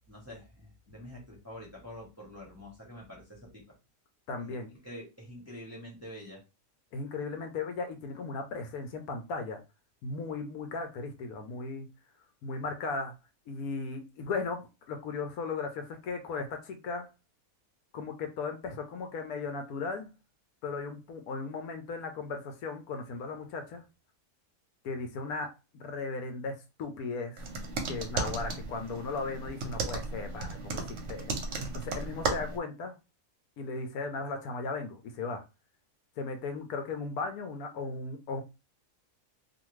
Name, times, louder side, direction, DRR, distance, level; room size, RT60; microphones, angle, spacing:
voice 1, 0.1-3.6 4.5-6.4, left 1 dB, 15° right, 0.8 m, -46 dB
voice 2, 4.3-4.7 6.9-9.6 10.0-11.9 12.4-13.1 13.5-17.1 17.9-20.1 20.6-23.8 24.8-27.4 27.9-32.9 33.6-35.4 36.2-38.4, left 4 dB, 75° left, 1.0 m, -36 dB
sound 1, 27.4-32.6, right 3 dB, 60° right, 0.9 m, -35 dB
2.5 x 2.4 x 3.0 m
omnidirectional pair, 1.6 m